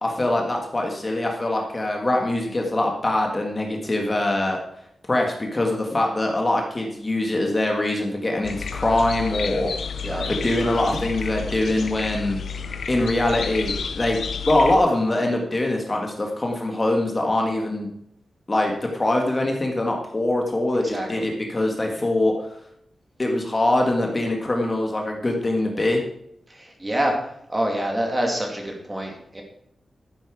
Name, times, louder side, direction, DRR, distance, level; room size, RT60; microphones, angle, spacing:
voice 1, 0.0-4.6 5.1-9.7 10.3-12.4 12.9-14.2 14.5-17.9 18.5-22.3 23.2-26.0, left 1 dB, 25° left, 1 dB, 1.6 m, -23 dB
sound 1, 8.4-14.8, left 6 dB, 70° left, 0.7 m, -31 dB
voice 2, 20.8-21.3 26.5-27.2 27.5-29.4, right 1 dB, 15° right, 1 dB, 2.4 m, -26 dB
12.0 x 9.8 x 4.7 m, 0.73 s
wide cardioid pair, 170°, 0 cm